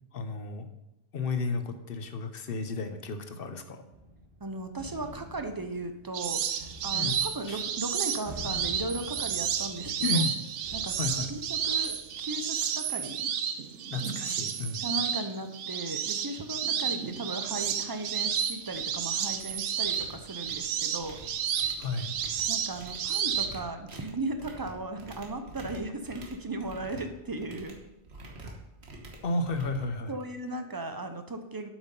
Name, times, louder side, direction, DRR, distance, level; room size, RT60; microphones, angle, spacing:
voice 1, 0.1-0.7 1.1-3.8 6.9-7.2 7.5-7.6 10.0-10.3 11.0-11.3 13.9-14.8 21.8-22.1 29.2-30.2, left 3 dB, 60° left, 8 dB, 0.9 m, -32 dB
sound 1, 3.9-12.6, equal, 55° right, 1.8 m, -47 dB
voice 2, 4.4-10.2 10.7-10.9 11.3-13.3 14.8-21.2 22.5-27.8 30.1-31.7, right 2 dB, 25° right, 7 dB, 0.5 m, -37 dB
sound 2, 6.1-23.5, right 8 dB, 90° right, 1.0 m, -31 dB
sound 3, 16.4-16.5 16.9-17.1 17.4-17.7 18.1-19.0 19.3-30.5, right 2 dB, 70° right, 1.5 m, -48 dB
7.9 x 6.1 x 5.3 m, 0.92 s
omnidirectional pair, 1.2 m